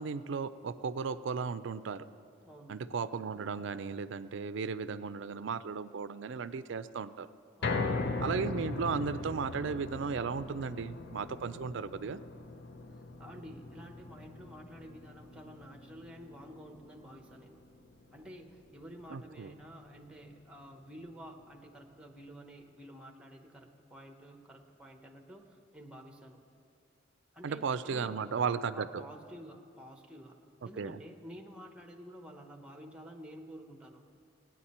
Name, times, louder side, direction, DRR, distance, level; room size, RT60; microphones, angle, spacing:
voice 1, 0.0-2.0 2.7-7.3 8.2-12.2 19.1-19.5 27.4-29.0 30.8-31.0, right 5 dB, 65° right, 14 dB, 0.4 m, -35 dB
voice 2, 2.5-2.9 12.9-17.6 18.1-26.4 27.3-28.4 28.7-30.4 30.6-34.0, equal, 5° right, 4 dB, 0.8 m, -50 dB
sound 1, 7.6-19.9 20.3-20.4 20.8-20.9, left 3 dB, 55° left, 0.6 m, -40 dB
17.5 x 9.4 x 4.2 m, 2.5 s
head